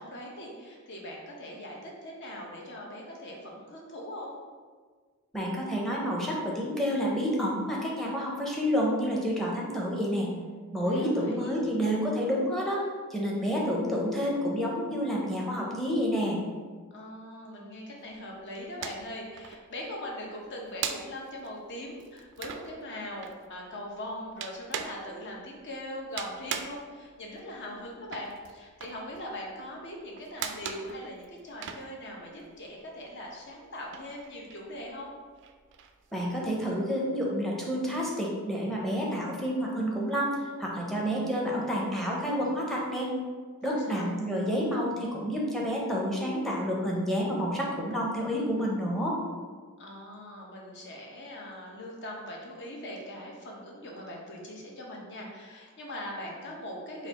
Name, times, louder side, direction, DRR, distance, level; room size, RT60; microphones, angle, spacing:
voice 1, 0.0-4.4 10.8-11.5 16.9-35.1 43.6-44.2 49.8-57.1, left 1 dB, 55° left, -1 dB, 0.8 m, -41 dB
voice 2, 5.3-10.3 10.7-12.8 13.1-16.4 36.1-43.1 43.6-49.2, equal, ahead, -3 dB, 0.7 m, -29 dB
sound 1, 18.0-19.1 19.4-32.7 33.0-36.7, right 7 dB, 55° right, 0.3 m, -40 dB
3.9 x 2.5 x 4.1 m, 1.5 s
head